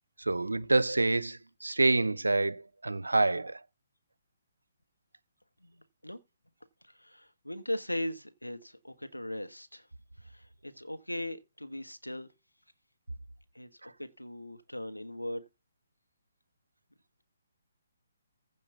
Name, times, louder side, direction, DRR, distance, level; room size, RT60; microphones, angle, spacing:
voice 1, 0.2-3.6 13.8-13.9, right 2 dB, 75° right, 0.7 m, -27 dB
voice 2, 5.6-6.2 6.8-9.9 10.2-12.3 13.5-15.5, left 1 dB, 90° left, 1.4 m, -39 dB
15.5 x 5.3 x 5.5 m
figure-of-eight pair, 135°, 0 cm